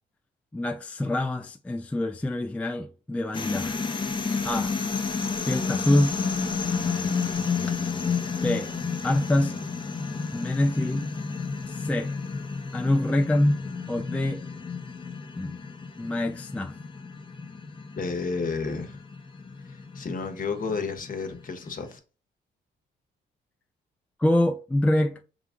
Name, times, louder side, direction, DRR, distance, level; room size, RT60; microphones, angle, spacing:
voice 1, 0.5-3.8 4.4-4.7 5.4-6.2 8.4-8.8 9.0-9.6 10.3-11.1 11.6-12.1 12.7-13.6 13.9-14.4 15.4-15.6 16.0-16.8 24.2-25.2, left 1 dB, 5° left, 0.4 m, -25 dB
sound 1, 3.3-21.8, left 5 dB, 25° left, 0.8 m, -31 dB
voice 2, 18.0-19.0 19.6-22.0, left 4 dB, 45° left, 1.1 m, -31 dB
5.9 x 2.3 x 3.7 m
cardioid pair, 90°, 20 cm